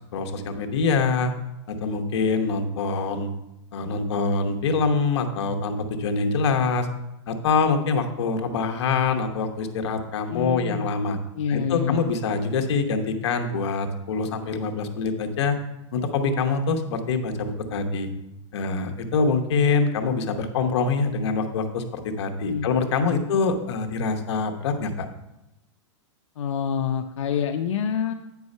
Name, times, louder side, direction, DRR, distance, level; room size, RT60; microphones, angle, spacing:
voice 1, 0.1-1.3 1.7-3.3 3.7-6.9 7.3-11.2 11.5-15.6 15.9-18.1 18.5-25.1, left 4 dB, 65° left, 5 dB, 1.1 m, -25 dB
voice 2, 10.3-10.9 11.3-12.0 22.4-22.7 22.9-23.2 26.4-28.1, left 8 dB, 90° left, 4 dB, 0.6 m, -27 dB
9.0 x 4.7 x 5.4 m, 0.91 s
supercardioid pair, 160°, 15 cm